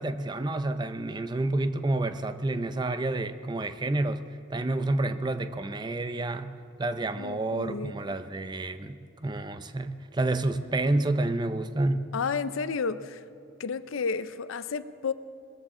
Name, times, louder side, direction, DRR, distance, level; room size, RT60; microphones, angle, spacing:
voice 1, 0.0-4.2 4.5-6.5 6.8-12.1, right 2 dB, 20° right, 10 dB, 0.5 m, -29 dB
voice 2, 7.2-7.9 12.1-13.2 13.6-15.1, left 5 dB, 90° left, 14 dB, 0.5 m, -31 dB
20.5 x 14.5 x 3.7 m, 2.5 s
head